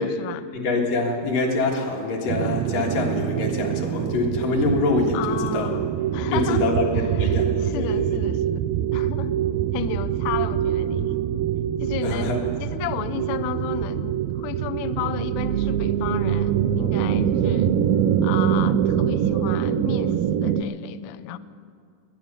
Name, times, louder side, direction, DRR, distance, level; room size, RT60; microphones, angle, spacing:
voice 1, 0.0-0.5 5.1-5.8 6.1-6.7 7.0-8.6 8.9-9.4 9.7-11.2 11.8-12.4 12.6-17.7 18.2-21.4, left 12 dB, 90° left, 10 dB, 1.6 m, -33 dB
voice 2, 0.5-5.7 6.3-8.2 12.0-12.4, left 3 dB, 70° left, 0 dB, 3.3 m, -25 dB
sound 1, 2.3-20.6, right 10 dB, 90° right, 2.3 m, -24 dB
20.5 x 10.0 x 6.7 m, 2.3 s
omnidirectional pair, 4.0 m